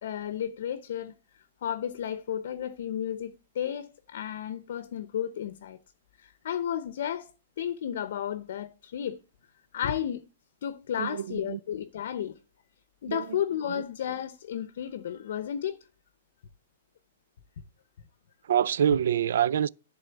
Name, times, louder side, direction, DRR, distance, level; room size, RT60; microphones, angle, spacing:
voice 1, 0.0-5.8 6.2-7.3 7.6-9.2 9.7-10.2 10.6-12.3 13.0-15.8, left 9 dB, 55° left, 0.7 m, -33 dB
voice 2, 11.0-11.6 13.1-13.4 13.7-13.8 18.4-19.7, right 9 dB, 65° right, 0.4 m, -26 dB
11.0 x 3.7 x 7.1 m
hypercardioid pair, 170°, 0 cm